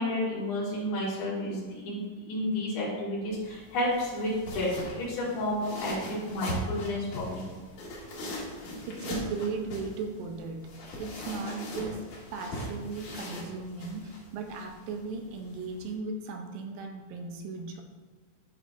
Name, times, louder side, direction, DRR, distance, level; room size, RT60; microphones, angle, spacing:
voice 1, 0.0-7.5, left 1 dB, 75° left, -7 dB, 3.6 m, -31 dB
sound 1, 3.3-15.9, equal, 55° left, 2.6 m, -40 dB
voice 2, 8.9-10.7 11.0-12.1 12.3-17.8, right 4 dB, 75° right, 4 dB, 2.2 m, -37 dB
13.0 x 5.2 x 2.5 m, 1.5 s
omnidirectional pair, 4.5 m